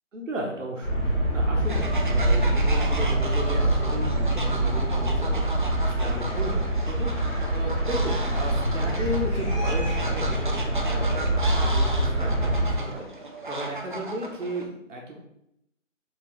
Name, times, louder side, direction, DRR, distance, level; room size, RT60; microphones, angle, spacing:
voice 1, 0.1-15.2, equal, 70° right, -1 dB, 1.1 m, -35 dB
sound 1, 0.8-12.8, right 1 dB, 15° left, 1.0 m, -25 dB
Fowl, 1.6-14.7, right 2 dB, 40° right, 0.4 m, -35 dB
4.5 x 3.0 x 3.1 m, 0.79 s
figure-of-eight pair, 160°, 39 cm